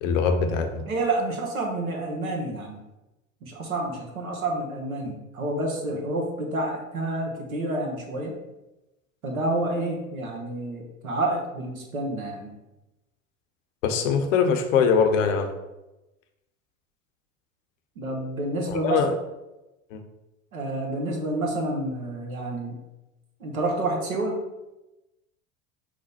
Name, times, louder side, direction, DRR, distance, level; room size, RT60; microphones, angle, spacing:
voice 1, 0.0-0.8 13.8-15.5 18.7-19.1 19.9-20.0, left 6 dB, 65° left, 5 dB, 0.7 m, -22 dB
voice 2, 0.9-2.8 3.4-8.4 9.2-12.5 18.0-19.0 20.5-22.8 23.4-24.4, right 2 dB, 80° right, 0 dB, 1.1 m, -29 dB
5.1 x 2.2 x 4.1 m, 0.99 s
figure-of-eight pair, 80°, 42 cm